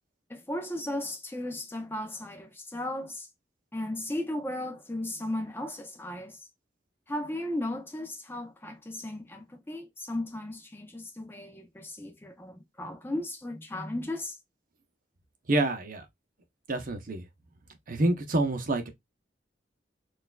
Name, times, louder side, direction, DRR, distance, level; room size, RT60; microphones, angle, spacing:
voice 1, 0.3-3.3 3.7-6.4 7.1-14.4, left 1 dB, 10° left, 0.6 m, -36 dB
voice 2, 15.5-16.1 16.7-17.3 17.9-18.9, right 2 dB, 50° right, 0.8 m, -27 dB
6.3 x 2.4 x 2.3 m
head